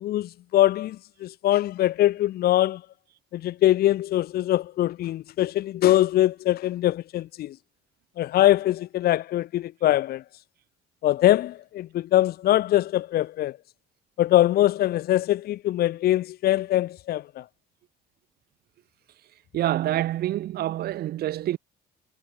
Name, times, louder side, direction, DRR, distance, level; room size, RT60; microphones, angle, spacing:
voice 1, 0.0-2.8 3.3-7.6 8.2-10.2 11.0-13.6 14.2-17.4, left 14 dB, 65° left, 1.4 m, -23 dB
voice 2, 19.5-21.6, right 13 dB, 70° right, 3.2 m, -26 dB
cardioid pair, 110°, 17 cm